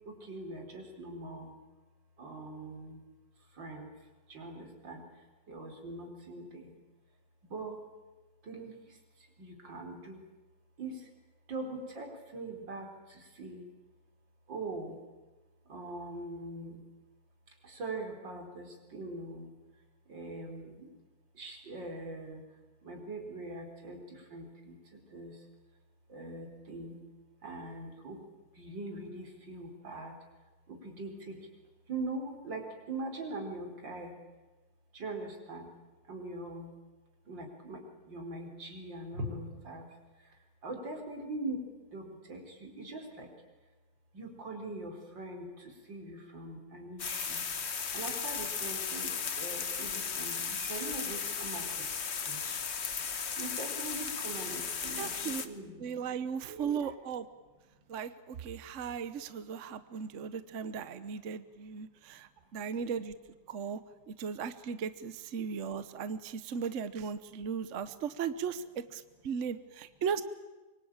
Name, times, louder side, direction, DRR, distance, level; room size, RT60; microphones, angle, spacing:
voice 1, 0.1-1.5 2.2-3.0 3.6-3.9 4.3-5.0 5.5-6.7 7.4-7.8 8.5-8.7 9.4-10.2 10.8-11.0 11.5-12.9 13.4-13.6 14.5-15.0 15.7-16.8 17.7-18.7 18.9-19.5 20.1-20.9 21.4-22.4 22.8-24.0 24.3-24.7 25.1-25.3 26.1-27.0 27.4-28.2 28.6-30.1 30.8-31.4 31.9-32.6 32.9-34.1 34.9-35.7 36.1-36.7 37.3-37.8 38.1-39.8 40.6-41.6 41.9-43.3 44.1-45.5 45.9-47.4 47.9-49.1 49.4-51.7 52.3-52.4 53.4-55.8 56.5-56.9, right 2 dB, 90° right, 3 dB, 5.0 m, -41 dB
sound 1, 47.0-55.5, left 6 dB, 40° left, 1.3 m, -36 dB
voice 2, 55.0-55.4 55.8-57.3 57.9-63.1 63.5-63.8 64.1-70.2, right 6 dB, 50° right, 12 dB, 1.2 m, -37 dB
24.5 x 24.0 x 8.8 m, 1.2 s
omnidirectional pair, 1.9 m